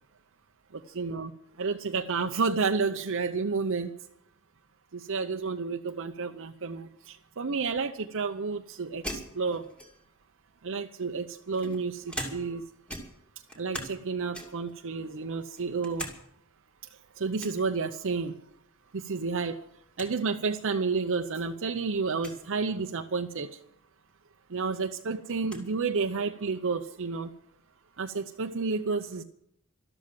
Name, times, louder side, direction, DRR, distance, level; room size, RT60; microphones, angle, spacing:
voice 1, 0.9-1.3 1.6-3.9 4.9-9.6 10.6-12.6 13.6-16.1 17.2-18.4 18.9-19.6 20.0-23.6 24.5-27.3 28.0-29.2, right 4 dB, 65° right, 5 dB, 0.7 m, -31 dB
sound 1, 9.0-10.2 11.0-12.6 12.9-14.0 14.3-14.7 15.2-16.2 16.5-16.6 17.4-17.6 19.1-19.4 19.7-19.8 19.9-20.1 20.9-21.0 22.1-22.4 24.1-24.2 24.5-25.7, equal, 5° left, 2.6 m, -41 dB
13.0 x 13.0 x 7.5 m, 0.73 s
head